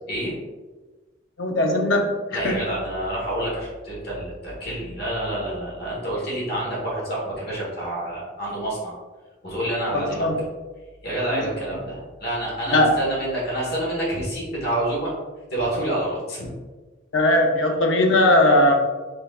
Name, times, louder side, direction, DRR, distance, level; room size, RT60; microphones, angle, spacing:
voice 1, 1.4-2.6 9.9-10.4 11.3-11.5 12.7-12.9 17.1-18.7, left 1 dB, 80° left, 3 dB, 0.7 m, -19 dB
voice 2, 2.3-8.9 9.4-10.3 11.0-15.1 15.5-16.5, right 1 dB, 55° left, -5 dB, 1.4 m, -28 dB
4.5 x 4.0 x 2.4 m, 1.3 s
head